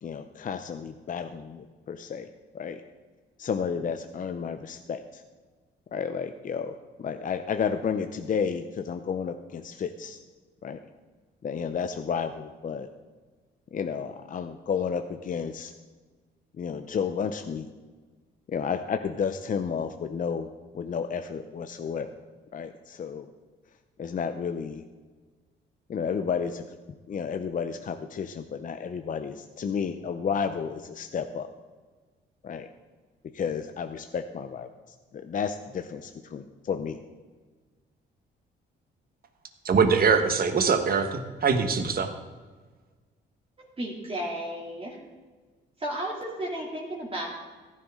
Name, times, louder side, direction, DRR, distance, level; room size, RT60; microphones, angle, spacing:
voice 1, 0.0-2.3 2.5-2.8 3.4-5.2 5.9-6.7 7.0-10.2 10.6-10.8 11.4-12.9 13.7-15.7 16.6-17.7 18.5-20.5 20.7-22.1 22.5-23.3 24.0-24.8 25.9-26.7 27.1-31.5 32.4-32.7 33.3-34.7 35.1-37.0, left 6 dB, 40° left, 8 dB, 0.7 m, -31 dB
voice 2, 39.6-42.1, right 5 dB, 50° right, 7 dB, 1.4 m, -23 dB
voice 3, 43.6-45.0 45.8-47.4, right 1 dB, 30° right, -3 dB, 2.7 m, -33 dB
15.0 x 10.5 x 3.7 m, 1.4 s
cardioid pair, 90°, 20 cm